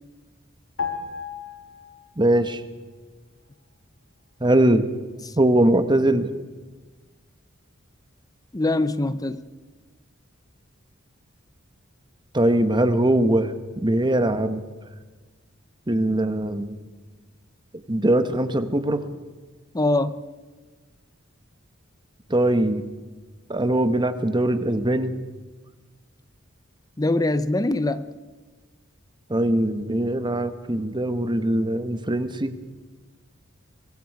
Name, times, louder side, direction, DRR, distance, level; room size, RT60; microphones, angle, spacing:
sound 1, 0.8-2.4 2.7-2.9, left 6 dB, 75° left, 3.6 m, -34 dB
voice 1, 2.2-2.6 4.4-4.8 5.4-6.3 12.3-13.5 13.8-14.6 15.9-16.8 17.9-19.0 22.3-22.8 23.5-25.1 29.3-32.5, right 1 dB, 25° right, 10 dB, 1.2 m, -21 dB
voice 2, 8.5-9.4 19.7-20.2 27.0-28.1, left 2 dB, 20° left, 13 dB, 0.7 m, -23 dB
24.5 x 22.0 x 4.8 m, 1.3 s
head